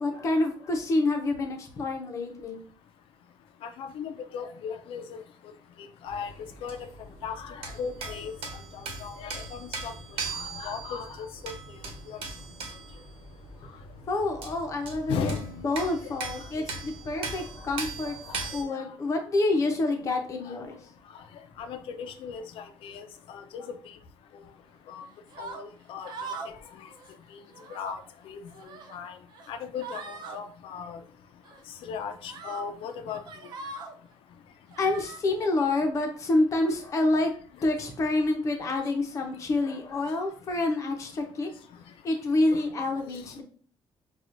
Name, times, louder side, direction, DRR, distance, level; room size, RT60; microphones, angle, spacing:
voice 1, 0.0-2.6 14.1-15.4 15.6-20.8 34.8-37.3 37.6-41.5 42.0-43.4, left 2 dB, 35° left, 3 dB, 0.7 m, -27 dB
voice 2, 3.6-5.2 5.8-6.3 6.6-6.8 7.2-8.4 8.7-9.9 10.3-11.5 12.1-12.2 15.1-15.5 15.9-16.0 18.3-18.8 21.6-23.8 24.9-25.1 25.4-26.3 26.8-26.9 27.7-28.4 28.9-29.2 29.5-31.0 31.8-33.2 42.5-42.6, left 6 dB, 80° left, 8 dB, 0.5 m, -37 dB
sound 1, 6.1-18.6, right 4 dB, 90° right, 1.0 m, -40 dB
sound 2, 25.3-25.6 26.0-26.6 26.9-27.1 27.5-28.0 28.5-29.0 29.3-29.5 29.8-30.4 31.4-31.6 32.3-32.6 33.1-33.9 34.7-35.2, right 4 dB, 50° right, 0.5 m, -41 dB
5.9 x 2.4 x 2.5 m, 0.43 s
cardioid pair, 175°, 9 cm